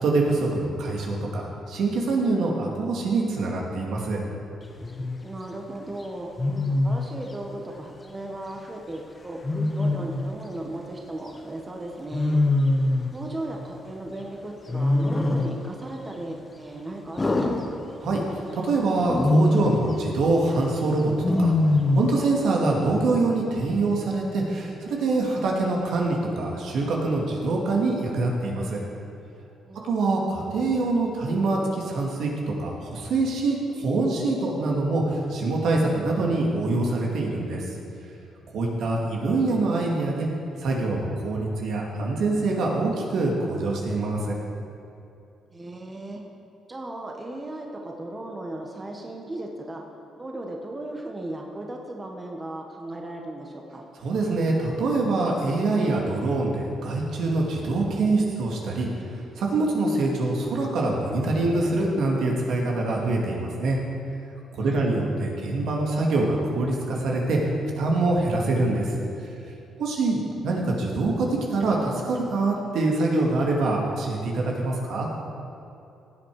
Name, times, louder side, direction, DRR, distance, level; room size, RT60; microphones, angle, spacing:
voice 1, 0.0-4.2 18.0-21.1 21.4-21.5 22.0-28.8 29.8-37.6 38.5-40.3 40.6-44.4 54.0-63.8 64.5-67.4 67.8-68.9 69.8-75.1, right 2 dB, 75° right, -1 dB, 2.2 m, -25 dB
Wild animals, 4.8-5.2 6.4-7.1 9.4-10.4 12.1-13.2 14.7-15.6 17.2-18.3 19.0-19.9 21.2-22.2, left 2 dB, 25° left, 1.2 m, -23 dB
voice 2, 5.2-6.3 6.8-9.4 9.7-12.4 13.1-17.8 29.6-30.3 45.5-46.2 46.7-49.8 50.2-53.8 64.6-64.9, right 1 dB, 25° right, 1 dB, 1.4 m, -36 dB
16.0 x 7.9 x 4.9 m, 2.8 s
cardioid pair, 90°, 0 cm